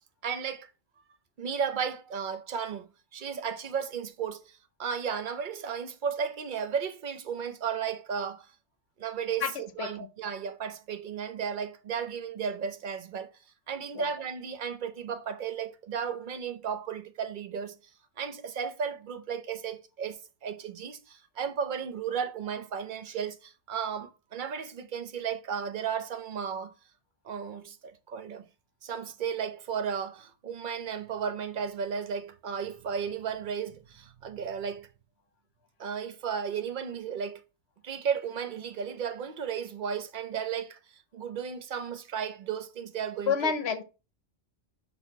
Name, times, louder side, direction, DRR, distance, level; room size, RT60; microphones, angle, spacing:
voice 1, 0.2-0.7 1.4-8.5 9.0-13.3 13.7-17.8 18.2-26.7 27.2-28.5 28.8-34.9 35.8-37.4 37.8-43.5, right 7 dB, 45° right, 0.7 m, -34 dB
voice 2, 43.3-43.8, left 6 dB, 60° left, 0.9 m, -28 dB
5.9 x 4.1 x 4.5 m
omnidirectional pair, 1.3 m